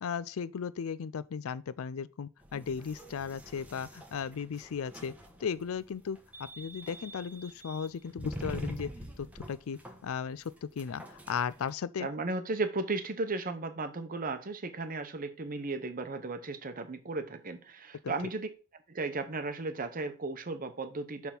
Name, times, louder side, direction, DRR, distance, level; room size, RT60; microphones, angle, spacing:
voice 1, 0.0-5.1 5.4-8.9 9.2-12.1 18.0-18.1, left 6 dB, 75° left, 0.4 m, -36 dB
sound 1, 2.4-11.7, right 1 dB, 5° right, 1.1 m, -45 dB
voice 2, 12.0-18.5 18.9-21.3, right 3 dB, 40° right, 0.9 m, -35 dB
6.8 x 3.6 x 5.9 m
head